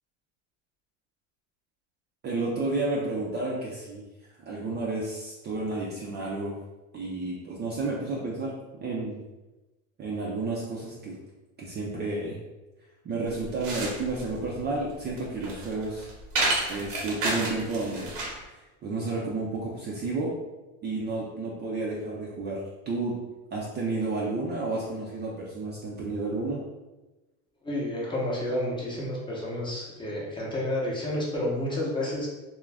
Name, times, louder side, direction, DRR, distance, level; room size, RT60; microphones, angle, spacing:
voice 1, 2.2-4.0 4.5-6.5 6.9-8.5 8.8-9.2 10.0-11.2 11.6-12.4 13.0-16.1 16.7-18.1 18.8-20.3 20.8-22.6 22.9-23.1 23.5-26.6, right 3 dB, 30° right, -4 dB, 0.4 m, -31 dB
sound 1, 13.3-18.4, right 2 dB, 90° right, 0.9 m, -31 dB
voice 2, 27.6-32.3, left 1 dB, 15° left, -5 dB, 0.7 m, -30 dB
2.4 x 2.2 x 3.2 m, 1.1 s
supercardioid pair, 115°, 38 cm